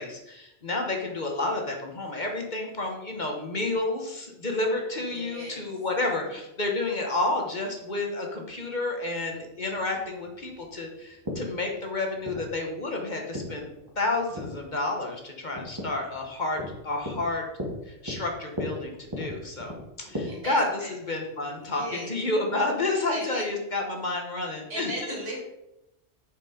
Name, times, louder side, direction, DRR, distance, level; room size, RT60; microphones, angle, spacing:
voice 1, 0.0-13.7 14.0-17.4 17.9-19.7 20.0-20.6 21.1-24.9, left 2 dB, 45° left, 2 dB, 1.3 m, -30 dB
voice 2, 4.9-5.8 6.0-6.1 20.1-20.9 21.6-22.2 23.1-23.4 24.7-25.4, right 1 dB, 65° right, -3 dB, 2.9 m, -37 dB
sound 1, 9.2-20.2, left 1 dB, 20° right, 2.0 m, -38 dB
7.3 x 5.6 x 5.0 m, 0.89 s
omnidirectional pair, 1.1 m